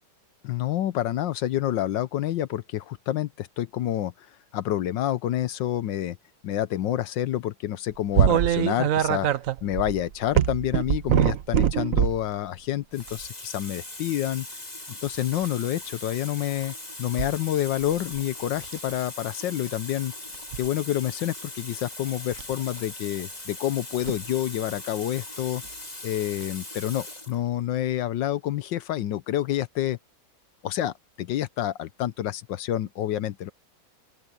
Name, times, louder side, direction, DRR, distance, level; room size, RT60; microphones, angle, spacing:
voice 1, 0.4-4.3 4.5-6.2 6.4-9.3 9.6-14.5 14.9-20.1 20.6-25.6 26.0-30.0 30.6-33.5, left 12 dB, 75° left, 1.3 m, -28 dB
sound 1, 8.1-12.3 13.0-13.3 15.1-15.5 17.2-17.3 17.8-18.2 18.6-18.9 20.3-20.7 22.3-22.5 24.0-24.1 25.7-25.8 26.4-26.5, right 10 dB, 65° right, 0.8 m, -23 dB
Water tap faucet, 12.1-12.3 12.9-27.4 28.3-28.5, left 2 dB, 20° left, 3.0 m, -40 dB
open air
omnidirectional pair, 2.2 m